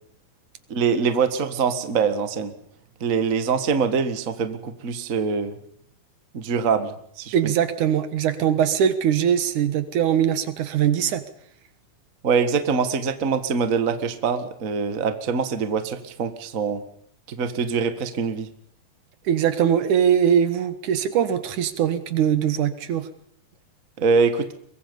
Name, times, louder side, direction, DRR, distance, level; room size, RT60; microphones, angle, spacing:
voice 1, 0.7-2.5 3.0-5.5 6.3-7.5 12.2-16.8 17.3-18.5 24.0-24.4, right 5 dB, 85° right, 9 dB, 0.7 m, -24 dB
voice 2, 7.3-11.2 19.3-23.1, right 9 dB, 60° right, 11 dB, 2.4 m, -21 dB
24.0 x 22.5 x 5.4 m, 0.67 s
omnidirectional pair, 4.5 m